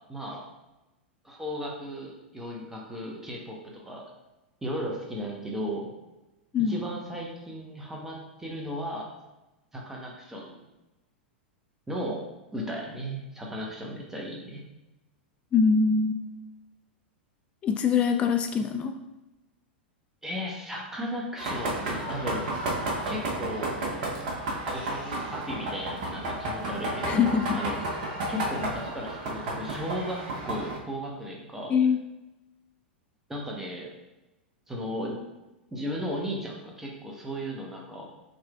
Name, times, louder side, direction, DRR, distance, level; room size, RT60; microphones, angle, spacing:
voice 1, 0.1-0.4 1.2-3.6 3.8-4.0 4.6-5.9 6.6-9.1 9.7-10.5 11.9-12.2 12.5-14.6 20.2-22.5 23.0-23.7 24.6-27.8 28.3-31.7 33.3-33.9 34.7-35.2 35.7-38.1, equal, 5° right, -2 dB, 1.0 m, -35 dB
voice 2, 15.5-16.3 17.6-18.9 27.1-27.6 31.7-32.0, left 6 dB, 20° left, 6 dB, 0.3 m, -23 dB
sound 1, 21.4-30.8, right 1 dB, 45° right, 0.9 m, -32 dB
6.2 x 3.3 x 2.4 m, 1.0 s
figure-of-eight pair, 95°, 6 cm